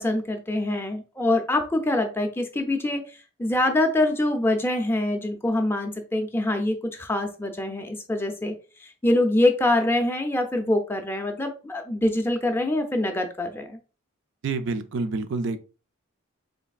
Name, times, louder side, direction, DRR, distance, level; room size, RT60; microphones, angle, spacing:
voice 1, 0.0-3.0 3.4-8.5 8.8-13.8, left 1 dB, 10° left, 0.4 m, -24 dB
voice 2, 14.4-15.6, right 3 dB, 60° right, 0.4 m, -28 dB
4.0 x 3.3 x 2.3 m
head